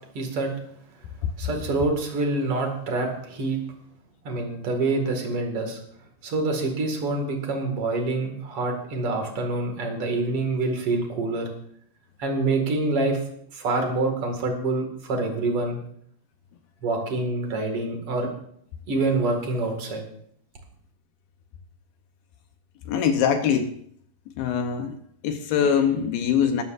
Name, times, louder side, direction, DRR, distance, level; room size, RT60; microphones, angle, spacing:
voice 1, 0.1-0.5 1.4-3.6 4.2-5.8 6.2-11.5 12.2-13.2 13.5-15.8 16.8-18.3 18.9-20.0, right 2 dB, 40° right, 3 dB, 2.3 m, -26 dB
voice 2, 22.9-23.7 24.4-25.0 25.2-26.6, left 7 dB, 75° left, 7 dB, 2.3 m, -23 dB
21.5 x 13.0 x 2.6 m, 0.67 s
omnidirectional pair, 5.0 m